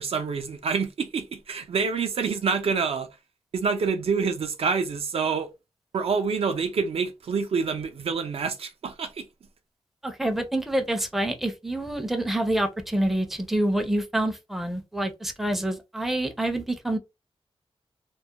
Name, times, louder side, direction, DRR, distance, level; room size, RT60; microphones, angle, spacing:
voice 1, 0.0-3.1 3.5-5.5 5.9-9.3, right 5 dB, 70° right, 0.4 m, -27 dB
voice 2, 10.0-17.0, right 1 dB, ahead, 0.4 m, -27 dB
2.2 x 2.0 x 2.7 m
wide cardioid pair, 140°, 10 cm